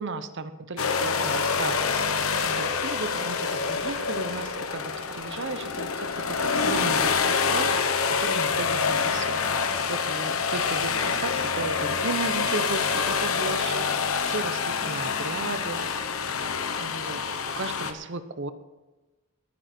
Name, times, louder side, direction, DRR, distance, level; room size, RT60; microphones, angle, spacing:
voice 1, 0.0-1.8 2.2-7.7 8.1-9.4 9.9-13.8 14.2-15.8 16.8-17.2 17.6-18.5, right 3 dB, 55° right, 11 dB, 0.9 m, -35 dB
sound 1, 0.8-17.9, left 5 dB, 75° left, 1.2 m, -26 dB
20.0 x 9.8 x 4.4 m, 1.2 s
head